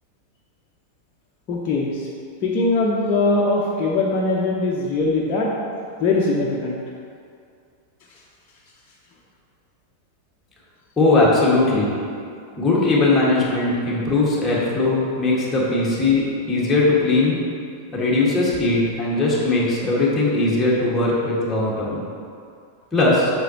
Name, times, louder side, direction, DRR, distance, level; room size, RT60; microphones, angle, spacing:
voice 1, 1.5-2.1 2.4-5.5 6.0-6.8, left 3 dB, 35° left, -4 dB, 0.8 m, -21 dB
voice 2, 11.0-12.0 12.5-17.4 17.9-22.0 22.9-23.3, left 2 dB, 10° left, -6 dB, 1.8 m, -19 dB
8.1 x 6.2 x 3.0 m, 2.3 s
figure-of-eight pair, 90°, 0 cm